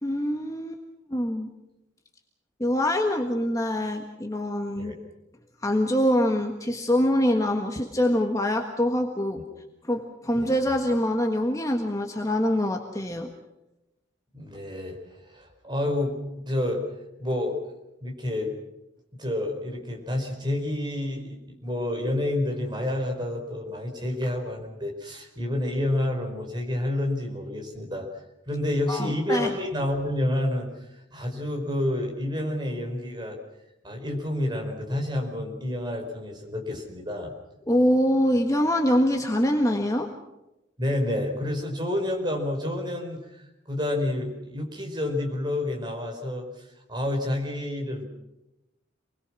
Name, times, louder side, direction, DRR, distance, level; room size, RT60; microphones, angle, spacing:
voice 1, 0.0-0.8 1.1-1.5 2.6-4.9 5.6-9.4 9.8-13.3 28.9-29.5 37.7-40.1, equal, 15° left, 2 dB, 1.6 m, -24 dB
voice 2, 14.3-16.8 17.2-17.6 18.0-18.5 19.1-28.1 28.5-30.7 31.1-33.4 33.8-37.3 40.8-43.2 43.7-48.1, left 1 dB, 25° right, 2 dB, 4.9 m, -29 dB
27.5 x 20.5 x 6.3 m, 0.94 s
head